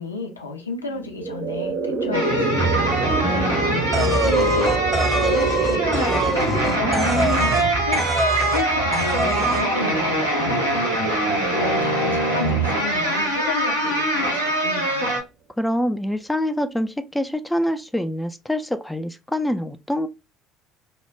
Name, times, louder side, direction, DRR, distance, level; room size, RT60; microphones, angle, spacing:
voice 1, 0.0-3.0 3.6-6.1 6.4-10.8 11.5-15.1, left 4 dB, 85° left, 0.4 m, -32 dB
sound 1, 0.9-12.0, right 4 dB, 55° right, 0.6 m, -28 dB
sound 2, 2.1-15.2, right 1 dB, 90° right, 0.7 m, -23 dB
voice 2, 3.2-3.9 15.6-20.1, left 1 dB, 5° left, 0.3 m, -25 dB
sound 3, 3.9-7.7 7.9-8.7 8.9-9.6, right 2 dB, 15° right, 0.7 m, -24 dB
2.2 x 2.1 x 3.1 m
figure-of-eight pair, 60°, 0 cm